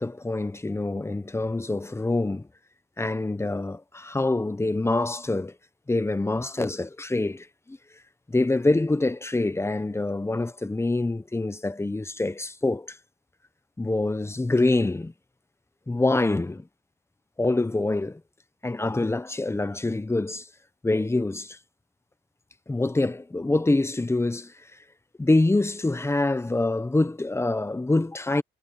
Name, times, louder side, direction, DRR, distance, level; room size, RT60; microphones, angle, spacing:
voice 1, 0.0-2.4 3.0-5.5 5.9-7.8 8.3-13.0 13.8-15.1 15.9-16.7 17.4-18.2 18.6-20.5 20.8-21.6 22.7-24.5 25.2-28.4, left 2 dB, 15° left, 1.0 m, -25 dB
cardioid pair, 90°, 20 cm